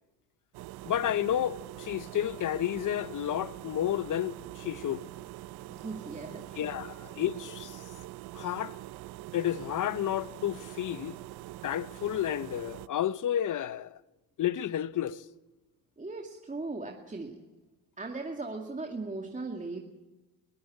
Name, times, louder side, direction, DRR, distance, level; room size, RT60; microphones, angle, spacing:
sound 1, 0.5-12.9, right 16 dB, 65° right, 0.7 m, -44 dB
voice 1, 0.8-5.0 6.6-7.8 8.3-8.8 9.3-11.2 11.6-14.0 14.4-15.2, left 11 dB, 45° left, 0.9 m, -31 dB
voice 2, 5.7-6.5 11.0-11.1 16.0-17.4 18.0-19.8, right 3 dB, 20° right, 2.3 m, -38 dB
22.0 x 15.0 x 8.5 m
supercardioid pair, 75°, 41 cm